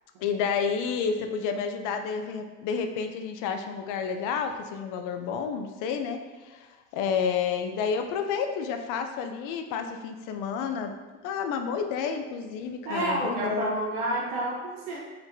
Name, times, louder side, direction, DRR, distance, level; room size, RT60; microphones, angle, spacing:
voice 1, 0.2-10.9 11.2-13.7, left 6 dB, 65° left, 6 dB, 0.6 m, -30 dB
voice 2, 12.8-15.0, right 1 dB, 90° right, -3 dB, 0.8 m, -29 dB
4.5 x 4.3 x 2.6 m, 1.3 s
supercardioid pair, 110°, 34 cm